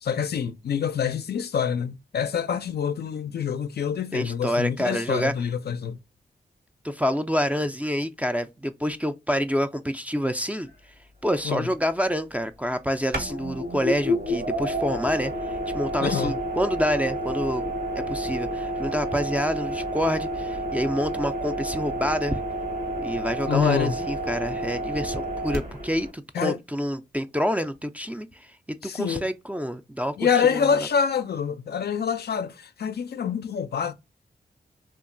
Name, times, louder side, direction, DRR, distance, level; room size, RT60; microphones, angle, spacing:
voice 1, 0.0-6.0 11.4-11.7 16.0-16.3 23.5-23.9 26.3-26.6 28.8-29.3 30.2-33.9, left 7 dB, 65° left, 0.4 m, -26 dB
voice 2, 4.1-5.3 6.8-10.7 11.2-22.4 23.0-30.2 30.5-30.8, equal, 10° right, 0.4 m, -27 dB
sound 1, 10.7-10.8 13.1-26.1, equal, 60° right, 1.1 m, -30 dB
2.8 x 2.3 x 2.5 m
cardioid pair, 50°, 18 cm